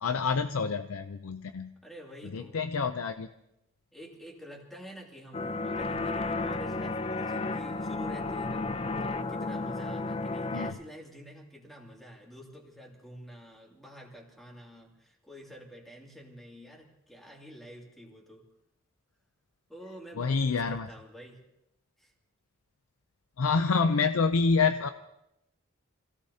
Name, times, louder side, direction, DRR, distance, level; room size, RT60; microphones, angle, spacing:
voice 1, 0.0-1.7 2.3-3.3 10.5-10.8 20.2-20.9 23.4-24.9, left 4 dB, 85° left, 9 dB, 0.6 m, -27 dB
voice 2, 1.8-2.6 3.9-8.6 9.0-18.5 19.7-21.4 22.0-22.1, equal, ahead, -2 dB, 2.6 m, -48 dB
sound 1, 5.3-10.7, left 3 dB, 30° left, 0.6 m, -32 dB
27.5 x 17.0 x 2.8 m, 0.85 s
head